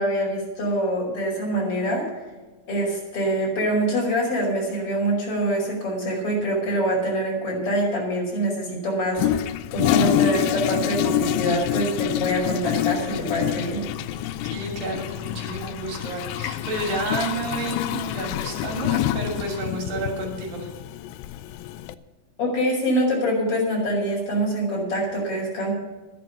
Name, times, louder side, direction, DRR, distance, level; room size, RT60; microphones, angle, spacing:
voice 1, 0.0-2.0 2.7-13.8 22.4-25.7, right 1 dB, 40° left, -2 dB, 6.2 m, -25 dB
Toilet flush, 9.2-21.9, left 12 dB, 85° left, 2.4 m, -27 dB
voice 2, 14.4-20.7, right 2 dB, 80° right, 1 dB, 4.6 m, -30 dB
13.0 x 11.0 x 7.1 m, 1.2 s
omnidirectional pair, 4.1 m